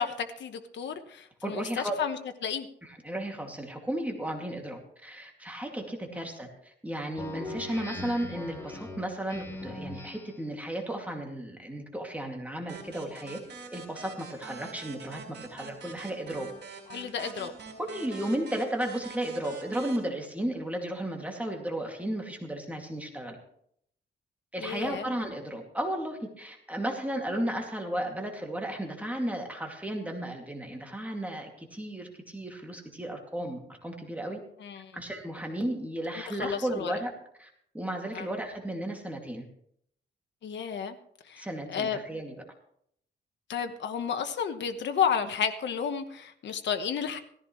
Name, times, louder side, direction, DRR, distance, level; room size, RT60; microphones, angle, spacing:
voice 1, 0.0-2.7 16.9-17.5 24.6-25.1 34.6-34.9 36.3-36.9 38.1-38.3 40.4-41.0 41.2-42.0 43.5-47.2, left 7 dB, 70° left, 7 dB, 1.2 m, -32 dB
voice 2, 1.4-2.0 2.8-13.4 13.7-15.2 15.5-16.5 17.8-23.4 24.5-34.4 34.9-37.1 37.4-37.5 37.7-39.4 41.4-42.3, right 1 dB, 10° right, 1 dB, 2.3 m, -34 dB
Speech synthesizer, 7.1-10.5, left 2 dB, 15° left, 2.1 m, -40 dB
sound 1, 12.7-20.0, right 4 dB, 65° right, 4.2 m, -45 dB
17.0 x 15.0 x 3.2 m, 0.68 s
wide cardioid pair, 130°, 19 cm